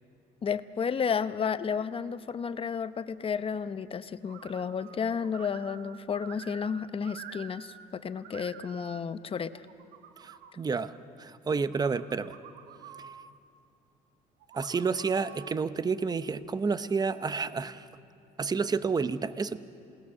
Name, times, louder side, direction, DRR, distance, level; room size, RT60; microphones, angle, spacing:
voice 1, 0.4-9.7, left 6 dB, 35° left, 12 dB, 0.8 m, -32 dB
sound 1, 4.3-5.0 5.2-7.9 8.1-9.0 9.5-10.5 11.5-13.3 14.4-15.6, right 9 dB, 90° right, 1.2 m, -49 dB
voice 2, 10.2-10.9 11.2-12.4 14.5-17.9 18.4-19.6, right 5 dB, 25° right, 13 dB, 0.8 m, -30 dB
27.5 x 19.0 x 7.3 m, 2.6 s
cardioid pair, 110°, 17 cm